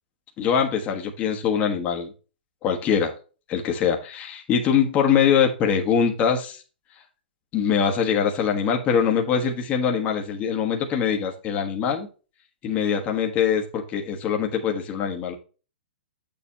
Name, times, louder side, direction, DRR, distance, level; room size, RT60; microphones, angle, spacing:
voice 1, 0.4-2.1 2.6-3.1 3.5-6.6 7.5-12.1 12.6-15.3, left 7 dB, 25° left, 3 dB, 1.4 m, -23 dB
8.1 x 6.9 x 2.9 m, 0.34 s
hypercardioid pair, 145°, 6 cm